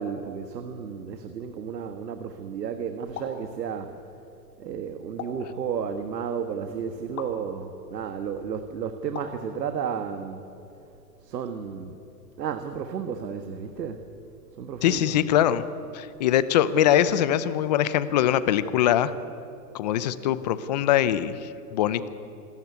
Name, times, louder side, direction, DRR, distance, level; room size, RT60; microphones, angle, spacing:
voice 1, 0.0-4.1 4.6-10.4 11.2-12.0 12.4-14.1 14.5-15.3, right 7 dB, 85° right, 7 dB, 1.6 m, -33 dB
sound 1, 3.1-3.5 5.2-5.5 7.2-7.4 9.1-9.5, left 7 dB, 60° left, 3.2 m, -38 dB
voice 2, 14.8-15.6 15.9-19.1 19.7-22.1, left 11 dB, 25° left, 15 dB, 0.5 m, -22 dB
27.0 x 13.5 x 9.5 m, 2.9 s
hypercardioid pair, 155°, 48 cm